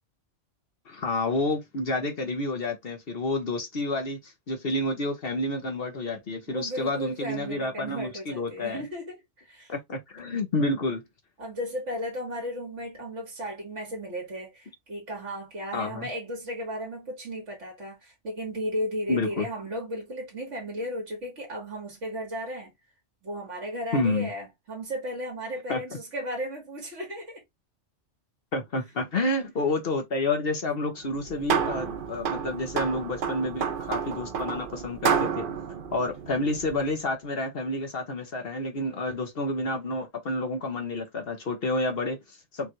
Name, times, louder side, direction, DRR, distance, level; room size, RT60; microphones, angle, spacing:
voice 1, 0.9-8.8 9.7-11.0 15.7-16.1 19.1-19.5 23.9-24.3 25.7-25.8 28.5-35.5 35.9-42.7, left 2 dB, 55° left, 1.1 m, -29 dB
voice 2, 6.5-9.7 10.5-10.7 11.4-22.7 23.2-27.4, equal, 85° right, 2.0 m, -35 dB
sound 1, 31.0-36.9, right 7 dB, 55° right, 0.7 m, -30 dB
5.1 x 2.4 x 3.0 m
omnidirectional pair, 1.2 m